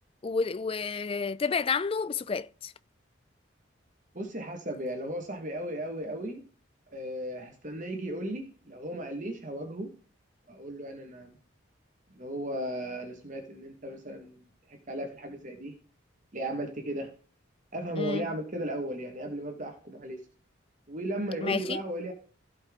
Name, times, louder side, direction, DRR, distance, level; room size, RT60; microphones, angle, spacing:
voice 1, 0.2-2.7 18.0-18.3 21.4-21.8, left 5 dB, 30° left, 0.3 m, -30 dB
voice 2, 4.1-6.4 6.9-9.9 10.5-11.3 12.2-14.4 14.7-15.7 16.3-17.1 17.7-20.2 20.9-22.1, right 1 dB, 40° right, 1.5 m, -35 dB
15.5 x 5.3 x 3.7 m
head